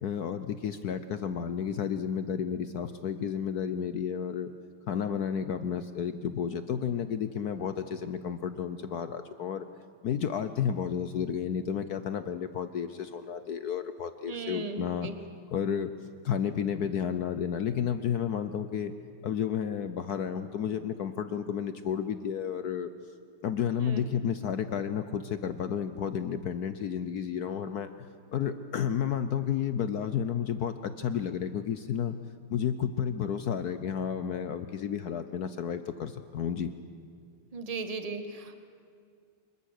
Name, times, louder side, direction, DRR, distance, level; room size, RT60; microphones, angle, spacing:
voice 1, 0.0-4.5 4.9-9.7 10.0-15.1 15.5-15.9 16.2-18.9 19.2-22.9 23.4-27.9 28.3-32.2 32.5-36.7, left 8 dB, 65° left, 11 dB, 0.9 m, -31 dB
voice 2, 14.3-15.1 23.8-24.0 37.5-38.6, right 3 dB, 20° right, 7 dB, 1.3 m, -37 dB
26.0 x 22.5 x 6.6 m, 2.2 s
omnidirectional pair, 2.4 m